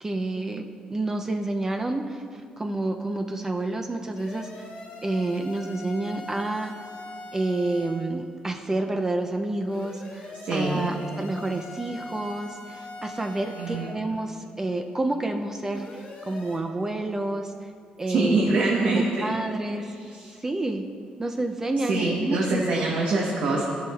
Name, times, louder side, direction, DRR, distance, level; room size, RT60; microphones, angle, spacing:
voice 1, 0.0-4.6 5.0-6.7 7.3-17.7 18.0-18.6 18.9-19.8 20.4-20.9 21.2-23.0, right 2 dB, 20° right, 4 dB, 0.3 m, -29 dB
sound 1, 4.1-8.1 9.7-14.0 15.7-16.6, left 2 dB, 80° left, 1.5 m, -42 dB
voice 2, 10.4-10.9 13.6-13.9 18.1-19.3 20.2-20.3 21.9-23.6, right 2 dB, 70° right, -3 dB, 1.0 m, -24 dB
14.0 x 6.2 x 2.3 m, 2.4 s
cardioid pair, 135°, 3 cm